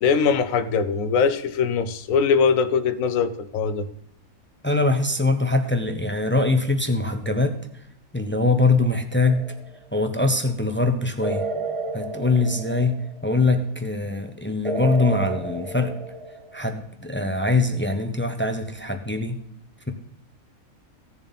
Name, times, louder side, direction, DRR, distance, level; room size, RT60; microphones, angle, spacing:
voice 1, 0.0-3.9, left 6 dB, 70° left, 11 dB, 1.2 m, -21 dB
voice 2, 4.6-7.6 8.1-9.4 9.9-11.4 11.9-12.9 13.2-15.9 16.5-19.4, left 3 dB, 10° left, 6 dB, 0.7 m, -22 dB
sound 1, 9.3-9.8 11.2-13.3 14.6-16.7, right 3 dB, 25° right, 0.9 m, -31 dB
16.0 x 7.1 x 4.2 m, 0.75 s
omnidirectional pair, 1.5 m